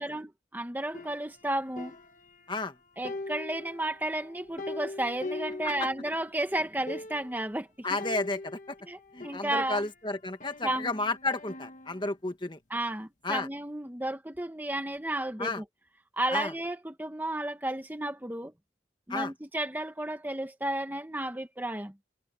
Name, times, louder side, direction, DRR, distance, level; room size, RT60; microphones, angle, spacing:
voice 1, 0.0-1.9 3.0-8.0 8.9-9.0 9.2-9.9 10.6-10.9 12.7-15.6 16.2-18.5 19.1-21.9, right 1 dB, 10° right, 1.2 m, -33 dB
sound 1, 0.9-2.7 3.0-6.3 6.6-6.7 6.9-7.5 8.0-10.0 10.4-12.1, left 2 dB, 45° left, 1.5 m, -42 dB
voice 2, 7.8-8.8 9.1-12.6 13.2-13.5 15.4-15.6 16.3-16.5 19.1-19.3, left 2 dB, 25° left, 1.6 m, -32 dB
head